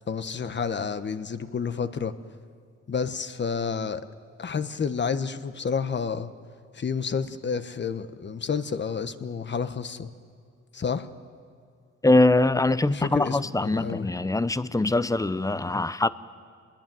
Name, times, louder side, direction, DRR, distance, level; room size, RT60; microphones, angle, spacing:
voice 1, 0.1-2.1 2.9-4.1 4.4-6.3 6.7-10.1 10.7-11.1 12.8-14.1, left 6 dB, 35° left, 1.3 m, -30 dB
voice 2, 12.0-16.1, left 2 dB, 10° left, 0.8 m, -23 dB
28.0 x 21.0 x 9.2 m
cardioid pair, 90°, 30 cm